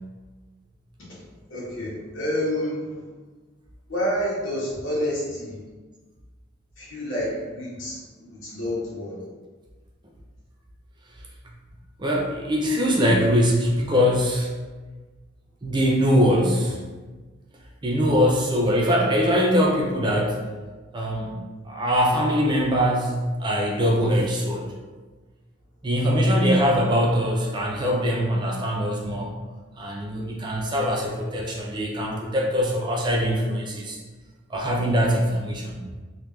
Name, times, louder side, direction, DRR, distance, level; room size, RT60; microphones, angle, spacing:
voice 1, 1.0-3.0 3.9-5.6 6.8-9.2, equal, 65° left, -7 dB, 1.3 m, -29 dB
voice 2, 12.0-14.5 15.6-16.8 17.8-20.4 20.9-21.4 21.6-24.7 25.8-29.3 29.8-34.0 34.5-35.8, equal, 20° right, -1 dB, 0.4 m, -22 dB
3.5 x 2.5 x 2.9 m, 1.3 s
head